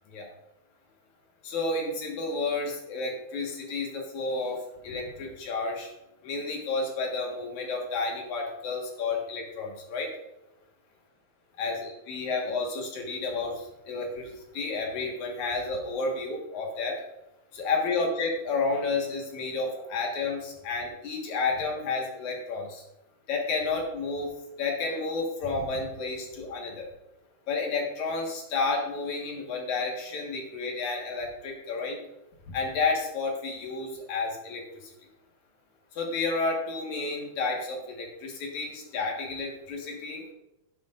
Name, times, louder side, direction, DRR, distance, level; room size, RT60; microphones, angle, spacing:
voice 1, 1.4-5.9 6.2-10.1 11.6-17.0 17.5-22.8 23.3-24.3 24.6-26.9 27.5-32.0 32.5-34.6 36.0-40.2, left 3 dB, 75° left, 1 dB, 3.0 m, -31 dB
11.5 x 10.5 x 2.5 m, 0.90 s
omnidirectional pair, 3.4 m